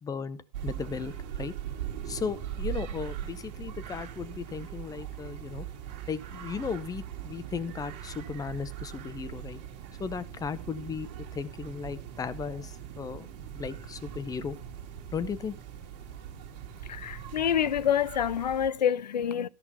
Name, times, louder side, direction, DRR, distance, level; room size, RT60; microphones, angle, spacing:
voice 1, 0.0-1.5 2.1-5.7 6.1-9.6 10.0-13.3 13.5-14.6 15.1-15.6, left 6 dB, 15° left, 0.8 m, -36 dB
sound 1, 0.5-18.7, right 10 dB, 50° right, 2.0 m, -40 dB
voice 2, 16.9-19.5, left 9 dB, 85° left, 0.4 m, -27 dB
13.5 x 5.9 x 5.7 m
hypercardioid pair, 100°, 21 cm